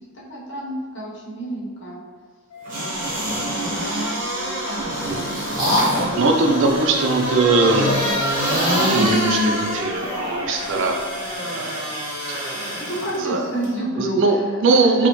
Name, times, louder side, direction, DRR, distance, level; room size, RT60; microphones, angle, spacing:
voice 1, 0.1-2.0 2.7-4.6 12.8-14.2 14.7-15.1, right 1 dB, 55° left, -5 dB, 0.9 m, -30 dB
sound 1, 2.5-11.8, left 3 dB, 90° left, 0.6 m, -37 dB
sound 2, 2.7-13.2 13.6-13.7, equal, 40° right, 1.1 m, -26 dB
sound 3, 3.5-4.1 4.8-6.2 7.6-10.7, equal, 15° right, 1.0 m, -26 dB
voice 2, 5.0-5.3 5.8-7.9 8.7-11.8 12.3-12.4 13.2-13.5 14.0-15.1, right 3 dB, 60° right, 3 dB, 0.4 m, -21 dB
4.3 x 2.0 x 2.9 m, 1.4 s
head